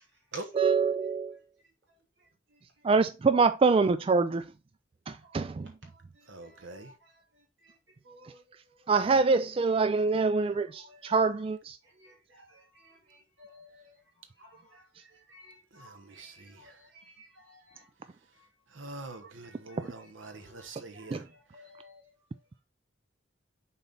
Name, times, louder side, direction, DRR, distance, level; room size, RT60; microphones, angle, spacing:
voice 1, 0.5-1.4 2.8-4.5 5.1-5.7 8.2-8.3 8.9-11.8 21.1-21.3, right 4 dB, 30° right, 0.3 m, -25 dB
voice 2, 6.3-6.9 15.7-16.8 18.7-21.2, right 2 dB, 85° right, 1.1 m, -44 dB
voice 3, 8.1-8.4 12.0-12.1 13.4-13.8 15.3-16.3 17.2-17.8 20.4-20.7 20.9-21.0 21.5-22.0, left 1 dB, 70° right, 3.0 m, -54 dB
6.9 x 4.3 x 3.9 m
head